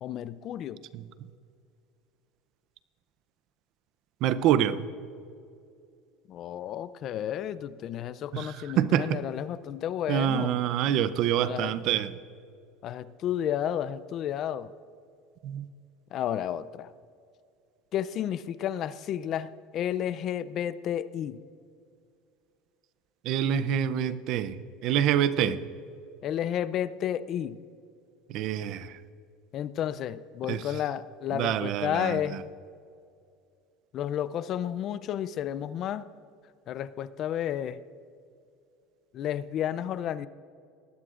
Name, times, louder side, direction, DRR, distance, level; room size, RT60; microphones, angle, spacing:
voice 1, 0.0-0.8 6.3-10.6 11.4-11.8 12.8-14.7 16.1-16.9 17.9-21.4 25.4-25.5 26.2-27.6 29.5-32.4 33.9-36.1 36.7-37.8 39.1-40.3, left 10 dB, 45° left, 16 dB, 0.4 m, -32 dB
voice 2, 4.2-4.8 8.3-9.2 10.1-12.1 15.4-15.6 23.2-24.6 24.8-25.6 28.3-29.0 30.5-30.6 31.3-32.2, right 10 dB, 55° right, 15 dB, 0.5 m, -26 dB
18.5 x 13.0 x 2.5 m, 2.4 s
supercardioid pair, 125°, 0 cm